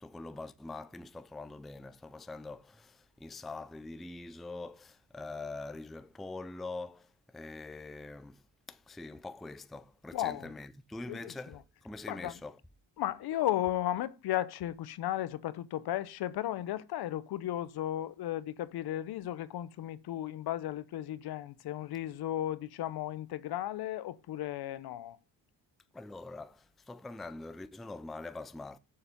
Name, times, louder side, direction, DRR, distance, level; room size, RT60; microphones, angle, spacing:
voice 1, 0.0-8.4 8.7-12.6 25.9-28.8, left 3 dB, ahead, 0.3 m, -44 dB
voice 2, 10.1-10.5 11.1-11.6 12.1-12.4 13.0-25.2, left 13 dB, 70° left, 0.7 m, -35 dB
7.0 x 6.8 x 5.2 m
cardioid pair, 110°, 40 cm